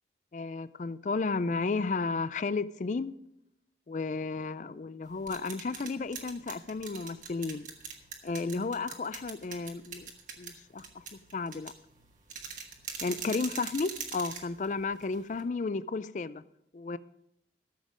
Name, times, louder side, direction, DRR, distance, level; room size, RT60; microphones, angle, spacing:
voice 1, 0.3-3.1 3.9-7.7 8.2-10.1 10.4-11.7 13.0-16.4 16.7-17.0, left 4 dB, 45° left, 0.4 m, -33 dB
sound 1, 5.0-15.4, right 6 dB, 45° right, 1.6 m, -43 dB
13.5 x 7.5 x 5.0 m
head